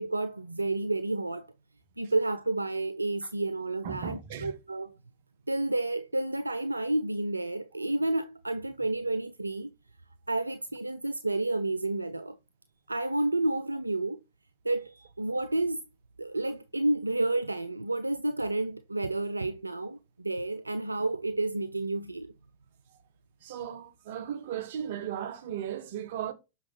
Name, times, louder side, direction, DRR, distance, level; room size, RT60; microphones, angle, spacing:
voice 1, 0.0-1.5 2.0-4.9 5.5-9.7 10.3-12.4 12.9-14.2 14.6-15.8 16.2-22.3, right 2 dB, 85° right, 0.3 m, -30 dB
voice 2, 3.8-4.5 23.4-26.3, right 9 dB, 55° right, 0.9 m, -36 dB
6.1 x 5.6 x 3.0 m
figure-of-eight pair, 90°, 0 cm